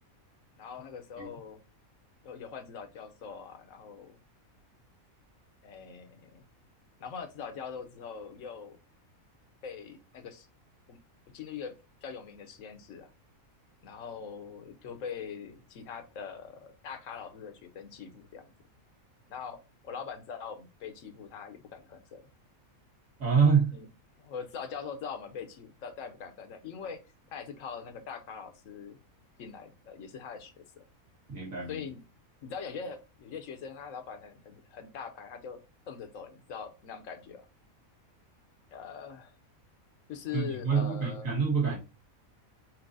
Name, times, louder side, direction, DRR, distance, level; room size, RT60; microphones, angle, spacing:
voice 1, 0.6-1.6 2.2-4.2 5.6-6.4 7.0-8.8 9.6-10.5 10.9-11.0 11.3-13.1 13.8-18.5 19.3-22.2 23.7-23.8 24.2-27.0 27.3-29.0 29.4-30.8 31.7-32.0 32.4-35.6 35.9-37.5 38.7-39.3 40.1-41.3, left 6 dB, 70° left, 8 dB, 1.1 m, -42 dB
voice 2, 23.2-23.7 31.3-31.8 40.3-41.8, right 6 dB, 65° right, -2 dB, 1.9 m, -26 dB
4.6 x 4.1 x 2.6 m, 0.30 s
omnidirectional pair, 1.5 m